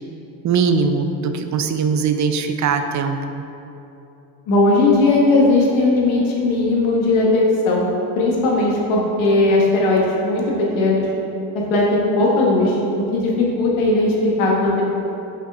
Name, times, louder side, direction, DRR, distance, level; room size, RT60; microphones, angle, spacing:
voice 1, 0.4-3.4, right 5 dB, 40° right, 7 dB, 0.5 m, -21 dB
voice 2, 4.5-7.9 8.1-11.0 11.5-12.8 13.1-14.8, left 2 dB, 75° left, -3 dB, 1.5 m, -17 dB
5.9 x 5.6 x 3.5 m, 2.9 s
supercardioid pair, 70°, 48 cm